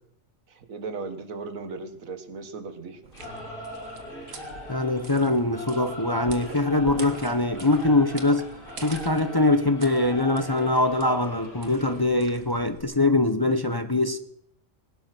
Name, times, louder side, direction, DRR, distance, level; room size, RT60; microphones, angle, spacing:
voice 1, 0.5-3.0, right 4 dB, 85° right, 1.8 m, -37 dB
sound 1, 3.0-12.8, right 3 dB, 70° right, 2.1 m, -44 dB
Singing / Musical instrument, 3.1-12.0, left 1 dB, 40° left, 5.6 m, -40 dB
voice 2, 4.7-8.5 8.8-14.2, left 2 dB, 20° left, 0.7 m, -23 dB
19.0 x 12.0 x 6.1 m
omnidirectional pair, 1.4 m